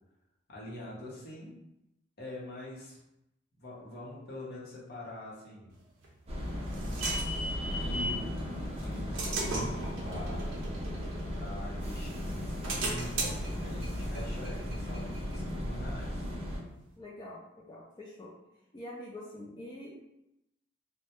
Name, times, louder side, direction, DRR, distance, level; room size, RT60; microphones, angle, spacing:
voice 1, 0.5-1.6 2.2-3.0 3.6-5.8 6.7-10.6 11.3-16.3, left 1 dB, 55° left, -6 dB, 0.8 m, -44 dB
sound 1, 6.0-8.2 8.8-11.9 12.3-15.7, right 2 dB, 85° right, 0.6 m, -37 dB
sound 2, 6.3-16.6, equal, 30° right, 0.5 m, -36 dB
voice 2, 17.0-17.4 17.7-18.3 18.7-19.9, left 1 dB, 25° left, -6 dB, 0.3 m, -45 dB
2.2 x 2.0 x 2.9 m, 0.86 s
head